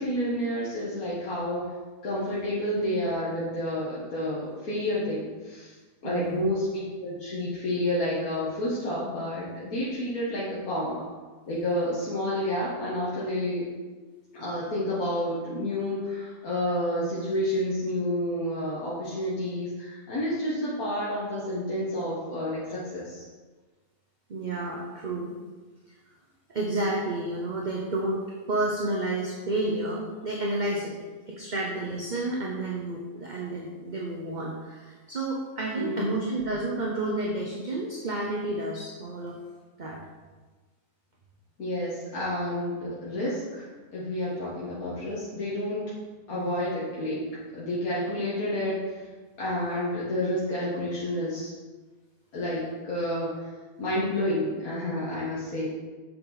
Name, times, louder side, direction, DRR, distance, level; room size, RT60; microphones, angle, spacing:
voice 1, 0.0-1.7 2.0-5.8 6.0-11.1 11.5-13.6 14.3-23.2 35.8-36.2 41.6-45.9 46.3-47.2 47.5-49.1 49.4-51.5 52.3-53.5 53.8-55.7, left 1 dB, 90° left, -8 dB, 2.1 m, -30 dB
voice 2, 6.0-6.5 24.3-25.3 26.5-30.9 31.3-39.4 39.8-40.0 46.3-46.6, right 2 dB, 35° right, -2 dB, 1.0 m, -30 dB
7.9 x 7.3 x 4.1 m, 1.3 s
omnidirectional pair, 1.5 m